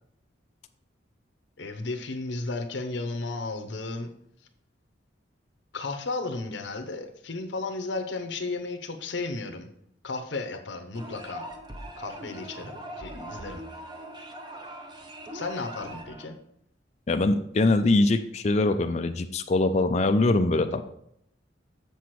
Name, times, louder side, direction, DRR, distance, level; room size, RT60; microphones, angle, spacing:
voice 1, 1.6-4.1 5.7-9.7 10.0-11.5 12.0-13.6 15.3-16.3, left 3 dB, 65° left, 6 dB, 0.8 m, -34 dB
sound 1, 10.9-16.3, right 1 dB, 25° right, 0.8 m, -41 dB
voice 2, 17.1-20.8, left 2 dB, 35° left, 7 dB, 0.4 m, -23 dB
7.0 x 6.0 x 4.7 m, 0.72 s
head